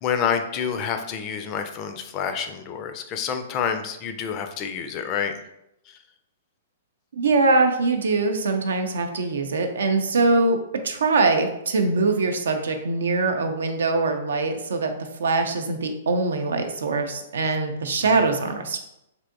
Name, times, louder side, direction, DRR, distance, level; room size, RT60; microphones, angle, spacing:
voice 1, 0.0-5.3 18.0-18.1, left 7 dB, 35° left, 7 dB, 0.4 m, -28 dB
voice 2, 7.1-10.6 10.8-14.9 15.2-18.8, right 3 dB, 80° right, 6 dB, 0.4 m, -22 dB
3.4 x 2.7 x 2.5 m, 0.84 s
hypercardioid pair, 125°, 0 cm